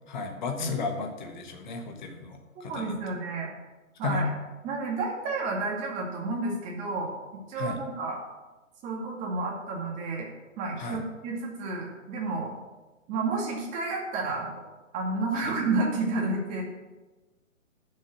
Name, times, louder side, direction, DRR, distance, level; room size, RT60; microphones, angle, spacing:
voice 1, 0.1-3.0 4.0-4.2 7.6-7.8 10.8-11.0 15.4-15.5, left 4 dB, 35° left, 4 dB, 1.4 m, -33 dB
voice 2, 2.7-3.5 4.0-4.3 4.6-7.1 7.5-8.2 8.8-10.3 10.6-12.5 13.1-14.5 14.9-16.6, right 3 dB, 20° right, -1 dB, 2.2 m, -30 dB
11.0 x 6.8 x 6.3 m, 1.2 s
figure-of-eight pair, 130°, 41 cm